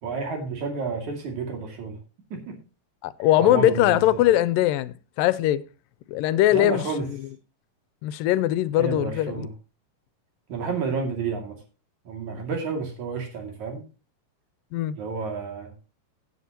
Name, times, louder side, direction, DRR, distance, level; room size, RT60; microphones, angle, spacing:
voice 1, 0.0-2.0 2.3-2.6 3.4-4.2 6.5-7.1 8.8-9.5 10.5-11.6 12.1-13.8 15.0-15.9, right 4 dB, 60° right, 3.8 m, -30 dB
voice 2, 3.0-5.6 6.1-6.8 8.0-9.5 14.7-15.0, left 14 dB, 90° left, 2.3 m, -21 dB
17.0 x 7.9 x 2.9 m
omnidirectional pair, 3.9 m